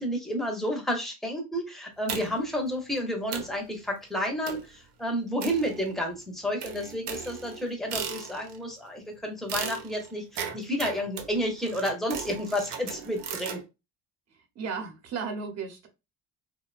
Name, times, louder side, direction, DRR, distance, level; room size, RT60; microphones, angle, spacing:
voice 1, 0.0-13.6, equal, ahead, 1 dB, 0.6 m, -31 dB
sound 1, 2.1-2.6 3.0-3.1 3.3-3.6 4.5-4.8 5.4-6.1 6.6-8.6 9.5-13.6, right 7 dB, 75° right, 0.7 m, -37 dB
voice 2, 14.3-15.9, right 5 dB, 40° right, 5 dB, 0.8 m, -35 dB
2.7 x 2.2 x 2.3 m, 0.25 s
cardioid pair, 115°, 39 cm